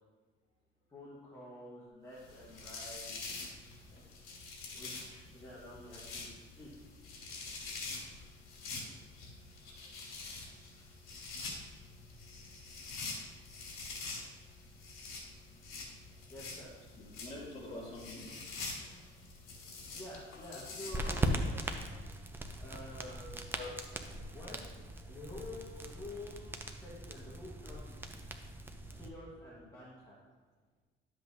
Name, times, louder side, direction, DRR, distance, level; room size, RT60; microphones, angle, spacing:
voice 1, 0.9-3.1 4.7-6.7 7.3-7.5 16.3-16.7 19.9-21.4 22.6-23.4 24.3-24.6 25.0-26.5 26.8-28.0 28.9-30.2, left 1 dB, 15° left, -7 dB, 1.4 m, -48 dB
sound 1, 2.2-21.4, left 3 dB, 75° left, 2.8 m, -46 dB
voice 2, 4.8-5.2 17.0-18.2 18.8-18.9 21.5-21.6 23.5-23.7, left 2 dB, 35° left, -5 dB, 2.5 m, -47 dB
sound 2, 20.9-29.1, right 1 dB, 10° right, 0.5 m, -39 dB
11.5 x 7.7 x 2.7 m, 1.4 s
cardioid pair, 160°, 21 cm